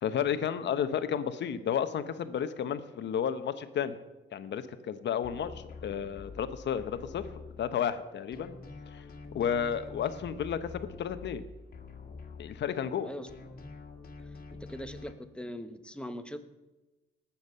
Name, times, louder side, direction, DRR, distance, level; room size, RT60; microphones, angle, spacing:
voice 1, 0.0-4.0 4.3-7.2 7.6-8.5 8.9-9.0 9.3-11.4 12.4-13.1, left 8 dB, 65° left, 11 dB, 1.0 m, -32 dB
sound 1, 5.2-8.0 8.3-13.0 13.3-15.1, left 4 dB, 50° left, 1.8 m, -47 dB
voice 2, 13.0-13.6 14.5-16.4, equal, 5° left, 8 dB, 1.1 m, -41 dB
19.0 x 7.2 x 5.6 m, 1.1 s
cardioid pair, 90°, 20 cm